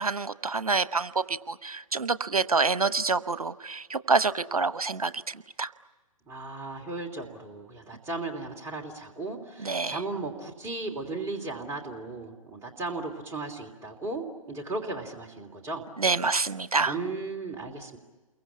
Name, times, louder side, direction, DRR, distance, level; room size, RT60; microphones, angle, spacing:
voice 1, 0.0-5.7 9.6-10.0 16.0-16.9, right 4 dB, 85° right, 14 dB, 1.0 m, -27 dB
voice 2, 6.3-15.8 16.8-18.0, right 3 dB, 15° right, 2 dB, 3.1 m, -36 dB
29.0 x 23.0 x 8.5 m, 1.3 s
figure-of-eight pair, 125°, 18 cm